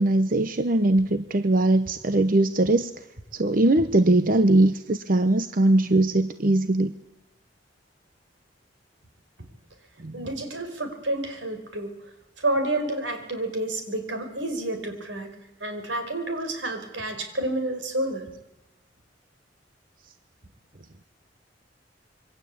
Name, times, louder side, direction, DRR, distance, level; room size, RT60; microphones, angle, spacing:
voice 1, 0.0-2.9 3.3-6.9 10.0-10.2, right 2 dB, 50° right, 10 dB, 0.9 m, -21 dB
voice 2, 10.1-11.9 12.4-15.3 15.6-18.3, right 1 dB, 85° right, 7 dB, 5.1 m, -29 dB
26.0 x 23.0 x 8.6 m, 0.96 s
head